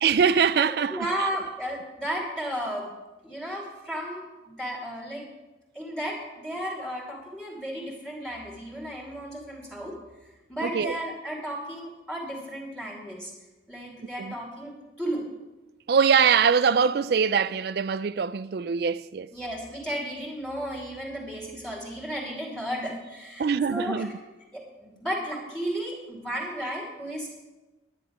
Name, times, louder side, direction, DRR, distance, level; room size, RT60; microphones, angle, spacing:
voice 1, 0.0-1.1 10.6-11.0 14.2-14.3 15.9-19.3 23.4-24.1, right 6 dB, 60° right, 0.4 m, -23 dB
voice 2, 0.6-2.9 3.2-5.3 5.7-10.0 10.5-13.3 13.7-15.2 19.3-24.1 24.5-27.3, equal, 5° left, 2.5 m, -34 dB
11.0 x 10.0 x 5.1 m
head